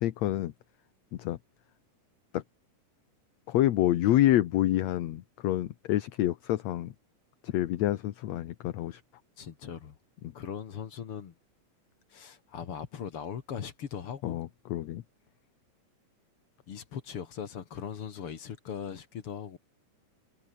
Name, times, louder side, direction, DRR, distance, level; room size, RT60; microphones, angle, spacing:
voice 1, 0.0-0.5 1.2-1.4 2.3-2.4 3.5-6.9 7.4-9.0 14.2-15.0, left 13 dB, 65° left, 2.0 m, -27 dB
voice 2, 9.4-10.0 10.3-11.3 12.1-14.4 16.7-19.6, left 7 dB, 50° left, 2.3 m, -39 dB
omnidirectional pair, 3.7 m